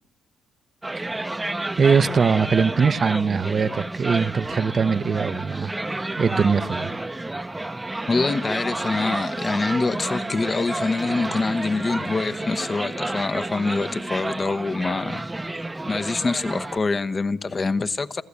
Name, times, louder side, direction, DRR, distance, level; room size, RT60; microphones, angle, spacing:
sound 1, 0.8-16.8, right 2 dB, 15° right, 0.8 m, -30 dB
voice 1, 1.8-5.7 6.2-6.9, right 5 dB, 45° right, 0.8 m, -21 dB
voice 2, 8.1-15.2 15.5-15.6 15.9-18.2, left 3 dB, 35° left, 1.0 m, -25 dB
27.5 x 15.5 x 8.5 m
supercardioid pair, 70°, 0 cm